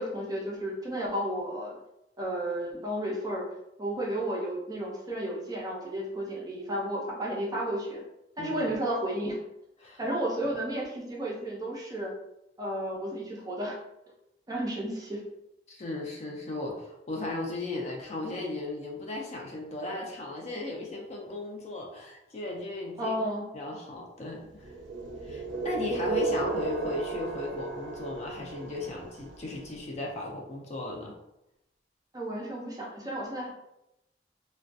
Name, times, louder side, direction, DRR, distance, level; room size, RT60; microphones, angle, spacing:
voice 1, 0.0-1.8 2.2-3.5 3.8-8.0 8.4-9.4 10.0-12.1 12.6-13.8 14.5-15.2 23.0-23.5 32.1-33.5, right 1 dB, 20° right, -3 dB, 0.5 m, -32 dB
voice 2, 8.4-8.7 9.8-10.0 15.7-23.2 23.5-24.7 25.2-31.2, left 2 dB, 35° left, -1 dB, 0.4 m, -36 dB
sound 1, 24.6-29.6, right 3 dB, 85° right, 0.4 m, -34 dB
2.3 x 2.1 x 2.5 m, 0.87 s
head